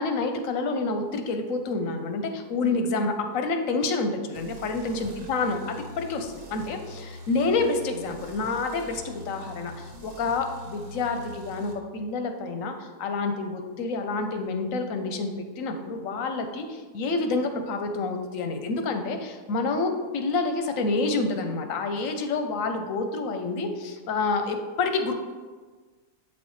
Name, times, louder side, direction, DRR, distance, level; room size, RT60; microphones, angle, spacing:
voice 1, 0.0-25.1, left 3 dB, 65° left, 6 dB, 0.9 m, -28 dB
sound 1, 4.3-11.7, left 1 dB, 60° right, 1.3 m, -44 dB
7.8 x 4.2 x 3.1 m, 1.4 s
omnidirectional pair, 1.7 m